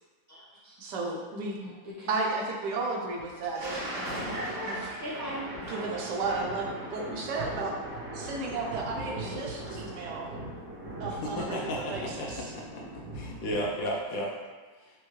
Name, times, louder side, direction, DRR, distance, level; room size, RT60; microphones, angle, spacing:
voice 1, 0.3-0.8 1.6-2.1 4.1-5.6 9.0-9.3, equal, 25° left, -11 dB, 0.4 m, -39 dB
voice 2, 0.8-1.6 2.1-4.2 4.6-4.8 5.6-7.7 8.1-10.3 11.0-12.5, right 3 dB, 70° right, -1 dB, 1.2 m, -33 dB
Thunder, 3.2-13.9, right 1 dB, 50° right, 1.6 m, -39 dB
voice 3, 11.2-12.8 13.1-14.4, equal, 75° left, -2 dB, 0.8 m, -34 dB
4.6 x 2.6 x 3.1 m, 1.3 s
omnidirectional pair, 2.0 m